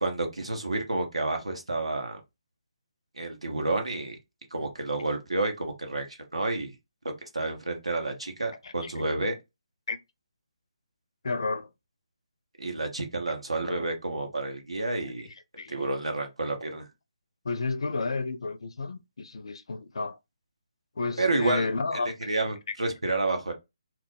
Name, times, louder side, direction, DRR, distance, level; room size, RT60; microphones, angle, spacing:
voice 1, 0.0-2.2 3.1-4.2 4.5-6.7 7.3-9.3 12.6-15.3 15.7-16.8 21.2-23.5, right 2 dB, 75° right, 0.9 m, -30 dB
voice 2, 11.2-11.7 15.6-15.8 17.4-20.2 21.0-22.1, left 3 dB, 55° left, 0.4 m, -31 dB
2.3 x 2.0 x 3.7 m
figure-of-eight pair, 145°, 3 cm